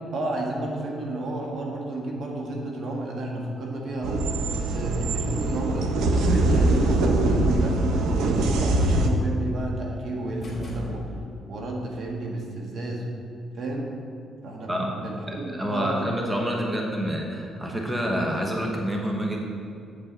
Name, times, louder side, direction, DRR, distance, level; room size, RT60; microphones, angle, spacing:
voice 1, 0.1-4.3 4.7-11.1 11.5-13.1 13.5-13.9 14.4-16.1, right 1 dB, 60° right, 0 dB, 1.6 m, -31 dB
sound 1, 4.0-9.1, right 2 dB, 90° right, 0.8 m, -23 dB
sound 2, 10.4-11.6, left 1 dB, 30° left, 2.2 m, -37 dB
voice 2, 14.7-19.4, equal, 15° right, 0 dB, 1.2 m, -28 dB
8.4 x 7.7 x 4.0 m, 2.6 s
cardioid pair, 90°, 0 cm